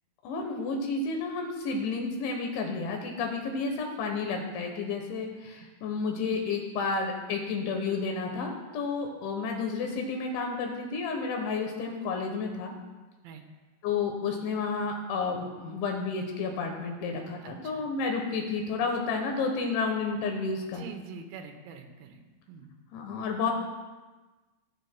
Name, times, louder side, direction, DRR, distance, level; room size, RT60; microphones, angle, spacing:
voice 1, 0.2-12.7 13.8-20.8 22.9-23.5, left 4 dB, 75° left, 2 dB, 3.1 m, -31 dB
voice 2, 17.4-17.9 20.7-22.2 22.5-22.7, right 6 dB, 85° right, 5 dB, 3.7 m, -44 dB
21.5 x 7.9 x 2.2 m, 1.2 s
omnidirectional pair, 5.9 m